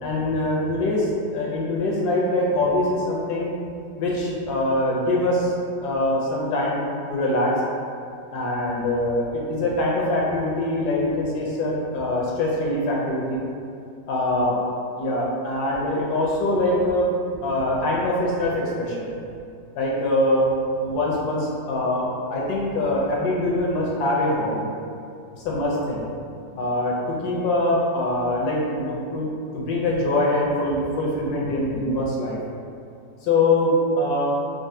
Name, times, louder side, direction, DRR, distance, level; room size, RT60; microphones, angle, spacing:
voice 1, 0.0-3.5 4.0-5.5 5.8-6.8 7.1-7.5 8.3-13.4 14.1-14.6 15.0-17.1 17.4-19.1 19.8-20.5 20.8-24.6 25.3-26.0 26.5-29.3 29.5-32.4 33.2-34.3, left 1 dB, 70° left, -4 dB, 1.0 m, -23 dB
4.0 x 2.0 x 2.6 m, 2.5 s
omnidirectional pair, 1.9 m